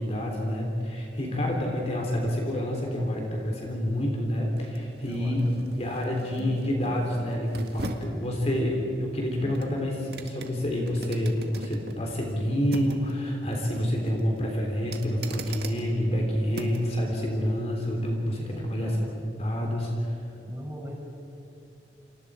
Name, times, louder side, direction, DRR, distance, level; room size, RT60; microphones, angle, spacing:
voice 1, 0.0-9.9 10.2-18.9 19.3-20.2, equal, 35° left, 0 dB, 3.4 m, -28 dB
voice 2, 1.3-1.7 5.0-6.1 6.3-7.2 9.4-9.8 18.5-19.1 20.5-21.0, equal, 15° right, -3 dB, 7.0 m, -41 dB
sound 1, 4.1-17.0 17.4-17.6, right 2 dB, 65° right, 1.9 m, -42 dB
29.0 x 27.5 x 5.0 m, 2.7 s
head